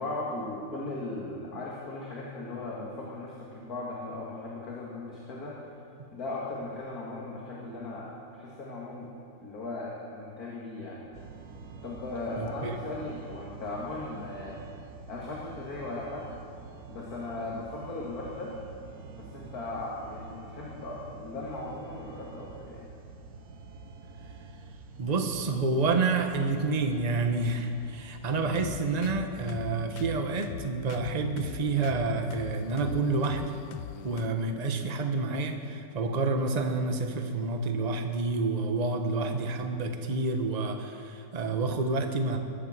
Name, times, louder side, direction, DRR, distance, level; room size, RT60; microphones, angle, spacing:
voice 1, 0.0-5.6 6.1-9.1 9.4-11.1 11.8-14.6 15.1-16.3 16.9-18.5 19.1-22.9, left 2 dB, 45° left, -4 dB, 2.3 m, -37 dB
sound 1, 11.1-29.2, right 4 dB, 55° right, 1.2 m, -47 dB
voice 2, 12.4-12.7 25.0-33.6 34.0-42.4, right 3 dB, 35° right, 6 dB, 0.7 m, -29 dB
sound 2, 28.4-34.3, left 10 dB, 75° left, 1.2 m, -41 dB
21.5 x 9.1 x 7.4 m, 2.5 s
omnidirectional pair, 2.4 m